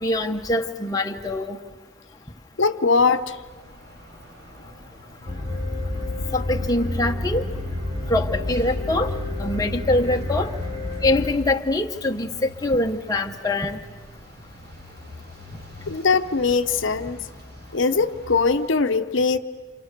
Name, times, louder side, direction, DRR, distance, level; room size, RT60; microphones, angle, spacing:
voice 1, 0.0-1.6 6.3-7.4 8.1-9.1 9.4-10.5 11.0-13.8, left 2 dB, 15° left, 3 dB, 0.9 m, -23 dB
voice 2, 2.6-3.4 15.9-17.2 17.7-19.4, left 4 dB, 60° left, 9 dB, 0.8 m, -21 dB
sound 1, 3.1-18.7, left 1 dB, 50° right, 3.1 m, -44 dB
sound 2, 5.3-11.3, left 2 dB, 30° right, 3.8 m, -29 dB
28.5 x 28.5 x 6.7 m, 1.3 s
head